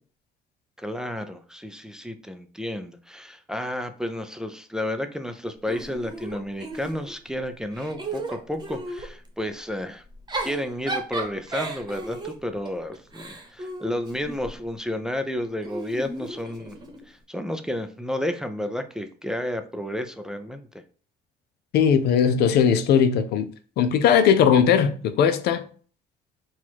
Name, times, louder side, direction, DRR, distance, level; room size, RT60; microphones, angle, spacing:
voice 1, 0.8-10.0 10.4-16.8 17.1-20.7, left 1 dB, 5° right, 0.4 m, -31 dB
Giggle / Chuckle chortle, 5.7-7.3 7.7-9.1 10.1-14.6 15.6-17.0, right 2 dB, 25° right, 1.0 m, -34 dB
voice 2, 21.7-23.5 23.8-25.6, left 7 dB, 75° left, 0.6 m, -19 dB
4.2 x 2.4 x 4.4 m
cardioid pair, 110°, 17 cm